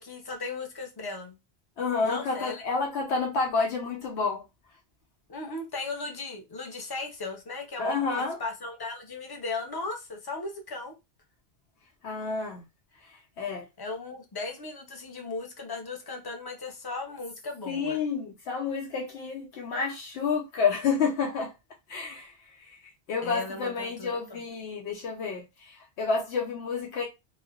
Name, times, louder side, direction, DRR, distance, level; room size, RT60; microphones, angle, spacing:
voice 1, 0.0-1.3 2.0-2.6 5.3-11.0 13.8-18.0 23.2-24.4, left 3 dB, 30° left, 0.4 m, -37 dB
voice 2, 1.8-4.4 7.8-8.4 12.0-12.6 13.0-13.6 17.7-21.5 21.9-22.8 23.1-27.0, left 5 dB, 85° left, 0.9 m, -30 dB
3.1 x 2.0 x 2.3 m
omnidirectional pair, 1.1 m